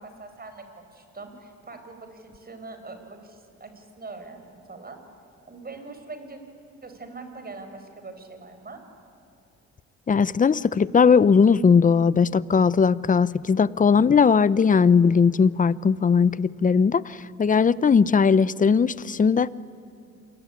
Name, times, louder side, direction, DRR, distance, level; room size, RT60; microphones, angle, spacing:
voice 1, 0.0-5.0 5.5-6.4 6.8-8.8, right 3 dB, 30° right, 7 dB, 4.9 m, -42 dB
voice 2, 10.1-19.5, left 6 dB, 25° left, 19 dB, 0.7 m, -19 dB
27.5 x 20.5 x 10.0 m, 2.6 s
cardioid pair, 90°, 30 cm